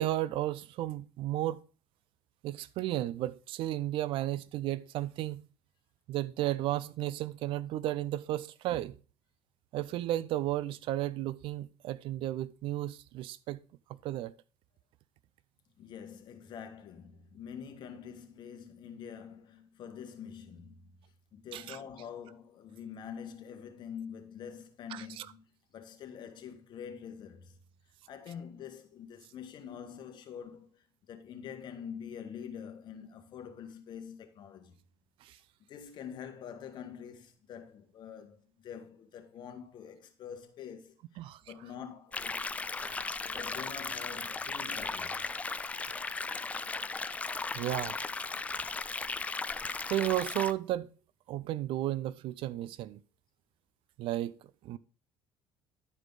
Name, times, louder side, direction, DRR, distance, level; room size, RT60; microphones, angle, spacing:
voice 1, 0.0-1.6 2.4-5.4 6.1-8.9 9.7-13.6 14.0-14.3 21.5-21.8 24.9-25.3 35.2-35.4 41.2-41.4 42.8-43.0 47.5-48.0 49.9-50.9 51.3-53.0 54.0-54.4 54.6-54.8, right 14 dB, 65° right, 0.4 m, -33 dB
voice 2, 15.8-21.0 21.3-25.4 25.7-27.6 28.1-34.8 35.7-42.4 43.2-45.3, left 7 dB, 50° left, 1.5 m, -46 dB
sound 1, 42.1-50.5, left 4 dB, 15° left, 0.3 m, -36 dB
11.0 x 4.8 x 3.9 m
cardioid pair, 115°, 10 cm